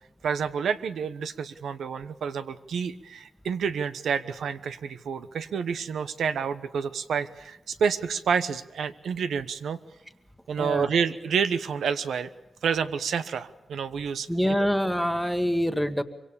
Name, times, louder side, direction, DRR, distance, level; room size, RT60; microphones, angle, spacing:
voice 1, 0.2-9.8 10.5-12.3 12.6-14.3, right 6 dB, 90° right, 11 dB, 1.1 m, -29 dB
voice 2, 10.6-10.9 14.3-16.0, equal, ahead, 10 dB, 1.5 m, -25 dB
25.0 x 24.0 x 6.9 m, 0.94 s
cardioid pair, 95°, 0 cm